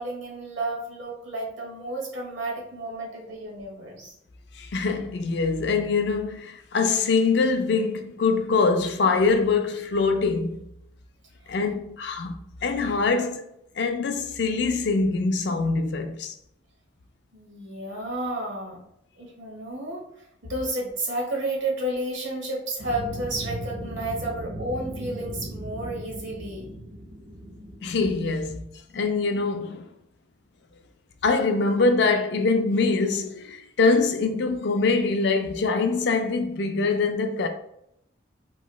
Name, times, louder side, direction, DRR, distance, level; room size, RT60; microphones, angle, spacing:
voice 1, 0.0-4.1 17.3-18.8 19.2-20.0 20.4-26.7, right 1 dB, 75° right, 1.1 m, -31 dB
voice 2, 4.6-10.6 11.5-13.5 13.8-16.3 27.8-28.6 28.9-29.9 31.2-37.5, left 4 dB, 60° left, 0.4 m, -24 dB
sound 1, 22.8-28.3, right 1 dB, 50° right, 0.6 m, -37 dB
3.1 x 2.9 x 2.2 m
head